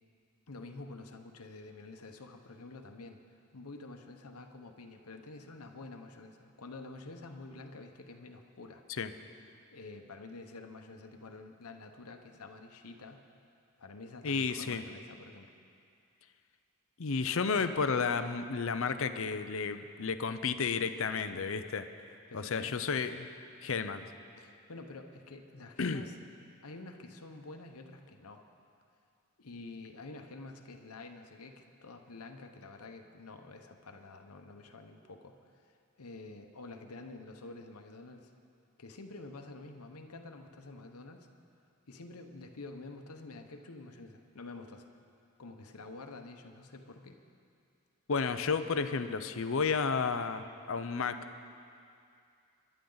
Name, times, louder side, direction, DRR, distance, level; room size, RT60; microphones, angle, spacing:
voice 1, 0.5-3.2 3.5-8.8 9.7-13.2 13.8-15.5 22.3-22.8 24.4-26.1 26.6-28.4 29.4-38.3 38.8-41.3 41.9-44.9 45.4-47.2, left 3 dB, 85° left, 5 dB, 1.0 m, -48 dB
voice 2, 14.2-14.8 17.0-21.9 22.3-23.3 23.6-24.0 25.8-26.0 48.1-51.2, left 5 dB, 60° left, 10 dB, 0.6 m, -32 dB
22.0 x 11.0 x 4.0 m, 2.5 s
head